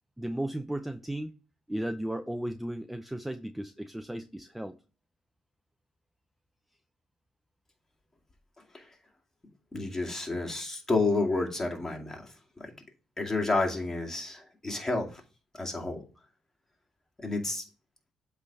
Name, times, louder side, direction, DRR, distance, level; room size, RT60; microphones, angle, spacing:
voice 1, 0.2-1.3 1.7-4.8, right 1 dB, 5° right, 0.5 m, -35 dB
voice 2, 9.7-12.3 12.6-12.7 13.2-15.2 15.5-16.0 17.2-17.6, left 3 dB, 20° left, 2.3 m, -30 dB
7.9 x 3.4 x 5.4 m
supercardioid pair, 70°, 2 cm